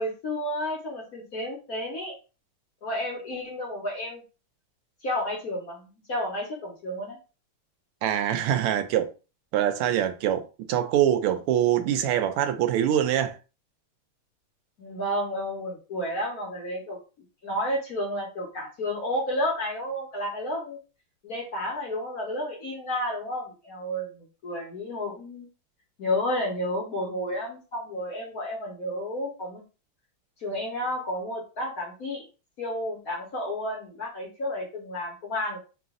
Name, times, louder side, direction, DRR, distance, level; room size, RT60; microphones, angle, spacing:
voice 1, 0.0-2.2 2.8-4.2 5.0-7.2 14.8-17.0 17.4-20.8 21.2-25.5 26.0-29.6 30.4-32.2 32.6-35.6, left 1 dB, 50° left, 1.2 m, -31 dB
voice 2, 8.0-9.1 9.5-13.4, right 10 dB, 85° right, 1.5 m, -24 dB
3.9 x 2.5 x 3.7 m
omnidirectional pair, 2.4 m